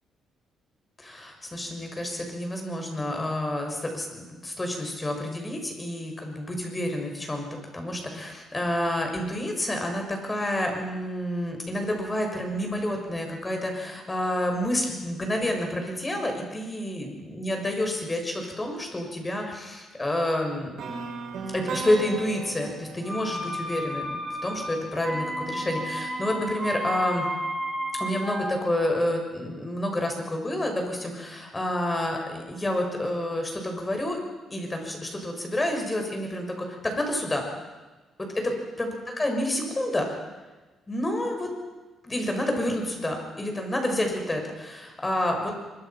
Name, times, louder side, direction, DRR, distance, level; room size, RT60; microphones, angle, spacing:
voice 1, 1.0-7.4 7.7-20.8 21.5-27.2 28.0-34.2 34.5-37.4 38.4-38.5 38.8-40.1 40.9-41.5 42.0-45.5, left 1 dB, 20° left, 3 dB, 6.5 m, -29 dB
sound 1, 20.8-24.7, right 4 dB, 65° right, 5.3 m, -37 dB
sound 2, 23.0-28.6, equal, 10° right, 4.0 m, -32 dB
24.0 x 23.0 x 6.0 m, 1.2 s
cardioid pair, 90°, 0 cm